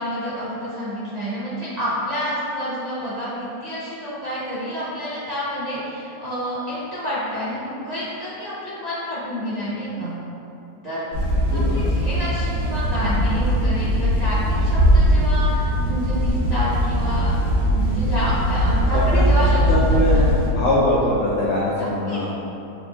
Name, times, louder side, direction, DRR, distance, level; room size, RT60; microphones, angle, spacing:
voice 1, 0.0-10.1 10.8-11.0 11.5-17.3 17.7-19.6 19.9-20.3 21.7-22.3, equal, 35° right, -11 dB, 0.8 m, -29 dB
sound 1, 11.1-20.5, equal, 55° right, 1.1 m, -20 dB
voice 2, 11.4-12.0 18.9-22.3, left 1 dB, 70° left, -7 dB, 0.6 m, -22 dB
4.3 x 2.6 x 3.3 m, 2.8 s
omnidirectional pair, 1.8 m